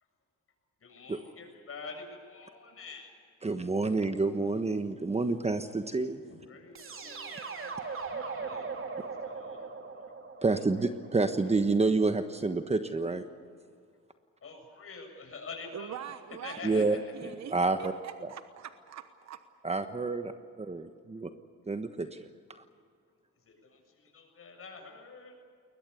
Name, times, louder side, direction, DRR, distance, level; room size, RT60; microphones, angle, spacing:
voice 1, 0.8-3.2 6.3-10.1 10.4-10.9 14.4-16.0 16.4-17.3 22.0-22.1 23.4-25.3, left 4 dB, 50° left, 4 dB, 7.4 m, -47 dB
voice 2, 3.4-6.2 10.4-13.2 16.6-17.0 17.5-17.9 19.6-20.3 20.6-21.3 21.7-22.3, right 3 dB, 20° right, 8 dB, 1.3 m, -28 dB
sound 1, 6.7-11.7, right 4 dB, 45° right, 3.4 m, -40 dB
voice 3, 15.7-19.4, right 9 dB, 60° right, 9 dB, 1.2 m, -44 dB
22.0 x 20.0 x 8.4 m, 2.2 s
cardioid pair, 90°, 30 cm